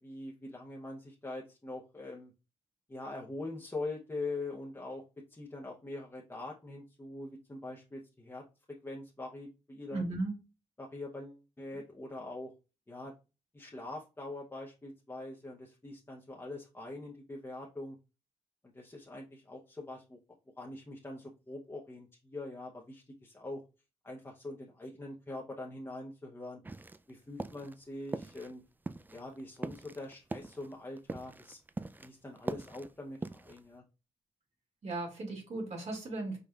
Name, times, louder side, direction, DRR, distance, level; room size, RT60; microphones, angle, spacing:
voice 1, 0.0-2.3 2.9-5.0 5.3-8.4 8.8-10.0 10.8-12.5 12.9-13.1 13.5-18.0 18.7-20.2 20.6-23.6 24.0-26.6 27.1-28.6 29.1-31.6 32.0-33.8, left 2 dB, 20° left, -2 dB, 0.9 m, -43 dB
voice 2, 9.9-10.3 34.8-36.4, right 2 dB, 60° right, 0 dB, 2.1 m, -36 dB
sound 1, 26.6-27.1 27.4-27.7 28.1-28.6 28.9-32.1 32.4-33.7, right 2 dB, 15° right, 0.3 m, -41 dB
5.1 x 4.1 x 2.4 m, 0.30 s
cardioid pair, 75°, 13 cm